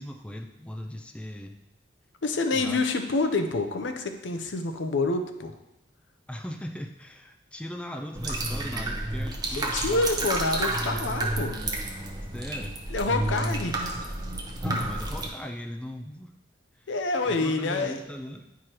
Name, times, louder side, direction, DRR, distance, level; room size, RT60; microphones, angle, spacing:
voice 1, 0.0-1.6 2.5-2.8 6.3-10.1 12.3-12.8 14.6-16.3 16.8-16.9 17.3-18.5, equal, 5° left, 4 dB, 0.3 m, -38 dB
voice 2, 2.2-5.5 9.5-11.6 12.9-13.8 16.9-18.0, left 3 dB, 80° left, 6 dB, 0.6 m, -27 dB
sound 1, 8.1-15.3, right 2 dB, 20° right, 0.7 m, -30 dB
9.3 x 4.8 x 3.0 m, 0.92 s
head